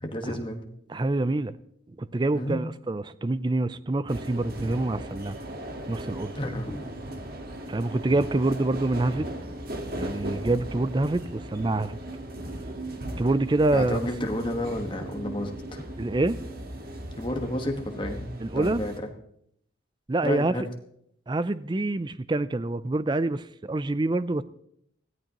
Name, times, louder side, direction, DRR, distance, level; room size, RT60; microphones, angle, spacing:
voice 1, 0.0-0.7 2.3-2.7 6.3-6.9 13.7-15.8 17.2-18.3 18.5-18.9 20.2-20.7, left 1 dB, 25° left, 1.4 m, -31 dB
voice 2, 0.9-1.6 2.0-5.4 5.9-6.3 7.7-9.3 9.9-12.0 13.2-14.1 16.0-16.4 18.4-18.8 20.1-20.7 21.3-24.4, right 2 dB, 25° right, 0.4 m, -26 dB
sound 1, 4.1-19.0, right 1 dB, 50° right, 1.6 m, -37 dB
21.0 x 14.0 x 3.0 m
head